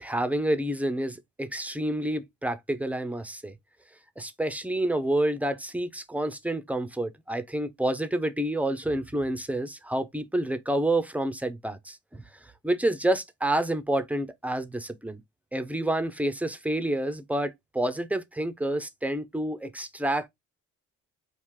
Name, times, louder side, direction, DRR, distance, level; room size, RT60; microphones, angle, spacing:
voice 1, 0.0-3.5 4.2-12.2 12.6-15.2 15.5-20.3, right 1 dB, 5° right, 0.4 m, -28 dB
3.1 x 2.4 x 3.6 m
cardioid pair, 90°, 30 cm